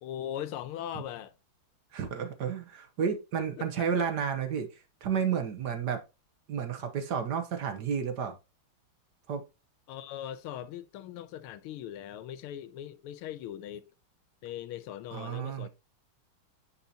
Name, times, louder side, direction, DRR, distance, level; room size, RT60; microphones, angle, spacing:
voice 1, 0.0-1.3 3.6-3.9 9.9-13.9 14.4-15.7, left 11 dB, 85° left, 1.6 m, -40 dB
voice 2, 1.9-6.0 6.5-8.4 9.3-9.4 15.1-15.7, right 7 dB, 60° right, 1.3 m, -31 dB
9.6 x 4.3 x 2.8 m
omnidirectional pair, 2.4 m